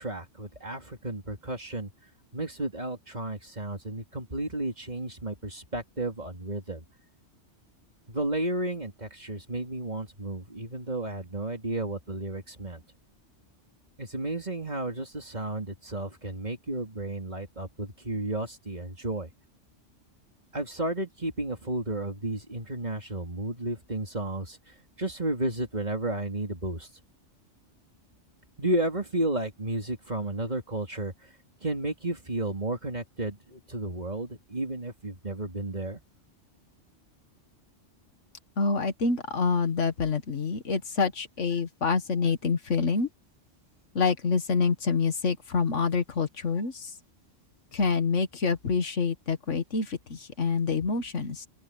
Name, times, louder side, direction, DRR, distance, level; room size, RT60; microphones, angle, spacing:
voice 1, 0.0-1.9 2.3-6.8 8.1-12.8 14.0-19.3 20.5-24.6 25.0-26.9 28.6-31.1 31.6-36.0, right 1 dB, 35° right, 3.4 m, -32 dB
voice 2, 38.6-43.1 43.9-46.9 47.7-51.5, left 5 dB, 75° left, 1.9 m, -27 dB
open air
omnidirectional pair, 1.2 m